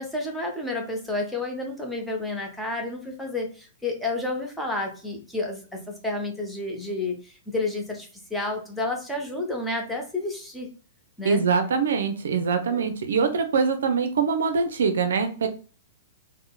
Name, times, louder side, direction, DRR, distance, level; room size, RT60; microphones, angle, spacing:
voice 1, 0.0-10.7 11.2-11.4 12.7-12.9, left 2 dB, 5° left, 0 dB, 0.8 m, -30 dB
voice 2, 11.2-15.5, right 5 dB, 70° right, 7 dB, 0.5 m, -23 dB
3.6 x 2.0 x 2.3 m, 0.38 s
hypercardioid pair, 115°, 0 cm